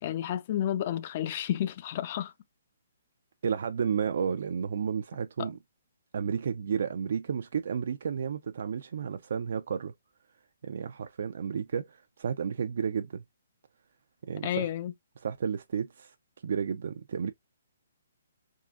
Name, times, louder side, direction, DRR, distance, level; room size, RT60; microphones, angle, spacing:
voice 1, 0.0-2.3 5.4-5.5 14.4-14.9, left 11 dB, 40° left, 0.5 m, -31 dB
voice 2, 3.4-5.6 6.1-9.9 10.6-13.2 14.3-14.7 15.2-16.1 16.4-17.3, right 7 dB, 65° right, 0.4 m, -32 dB
3.6 x 2.4 x 2.4 m
hypercardioid pair, 140°, 0 cm